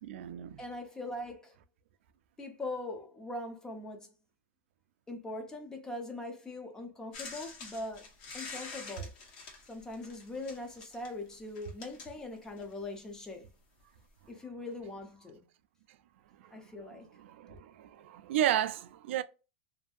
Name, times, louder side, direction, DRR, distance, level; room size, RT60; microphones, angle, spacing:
voice 1, 0.0-0.6 17.2-19.2, right 11 dB, 70° right, 0.4 m, -32 dB
voice 2, 0.6-1.5 2.4-4.1 5.1-8.1 8.3-9.1 9.7-13.5 14.3-15.4 16.5-17.1, left 2 dB, 10° left, 0.6 m, -41 dB
sound 1, 7.1-12.8 13.8-13.9, left 4 dB, 55° left, 0.9 m, -47 dB
2.6 x 2.6 x 2.3 m
supercardioid pair, 160°, 7 cm